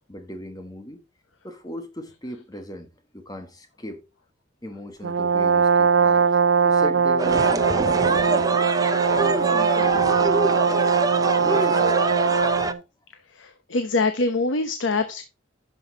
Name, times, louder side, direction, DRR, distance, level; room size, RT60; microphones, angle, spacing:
voice 1, 0.1-1.0 1.4-4.1 4.6-6.3 6.6-8.6 9.2-11.1 11.3-12.1, left 1 dB, 20° left, 1.4 m, -37 dB
Brass instrument, 5.0-12.8, right 6 dB, 65° right, 0.4 m, -21 dB
sound 1, 7.2-12.7, right 3 dB, 20° right, 0.6 m, -25 dB
voice 2, 13.3-15.2, left 3 dB, 75° left, 0.9 m, -24 dB
11.5 x 5.6 x 4.0 m
head